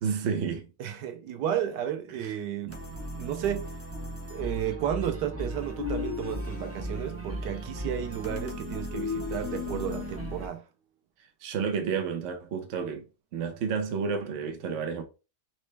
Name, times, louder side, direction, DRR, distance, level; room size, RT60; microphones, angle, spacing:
voice 1, 0.0-0.7 2.1-2.3 2.7-2.8 11.4-13.1 13.3-15.0, right 6 dB, 55° right, 1.0 m, -31 dB
voice 2, 0.8-2.8 3.2-3.7 4.3-10.6, right 10 dB, 85° right, 1.3 m, -32 dB
sound 1, 2.7-10.5, right 1 dB, 15° right, 0.5 m, -37 dB
sound 2, 5.8-7.0 8.3-10.5, left 8 dB, 55° left, 1.5 m, -36 dB
4.3 x 3.1 x 3.2 m
omnidirectional pair, 1.8 m